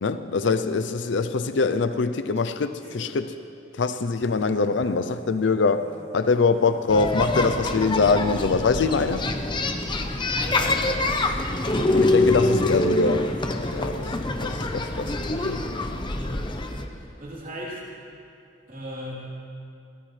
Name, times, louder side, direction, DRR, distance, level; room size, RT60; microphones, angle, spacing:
voice 1, 0.0-3.3 3.8-5.9 6.1-9.3 11.9-13.3 13.7-14.0 14.4-15.6, left 4 dB, 70° left, 10 dB, 0.5 m, -23 dB
sound 1, 1.7-2.1 2.4-2.5 2.8-3.2 3.7-3.8 4.2-7.0 7.5-7.6 8.0-8.8, right 1 dB, 70° right, 5.0 m, -49 dB
sound 2, 6.9-16.8, left 2 dB, 25° left, 0.9 m, -25 dB
voice 2, 10.2-10.9 16.9-17.8 18.7-19.4, equal, 45° right, -5 dB, 3.5 m, -36 dB
22.5 x 17.5 x 3.3 m, 2.6 s
head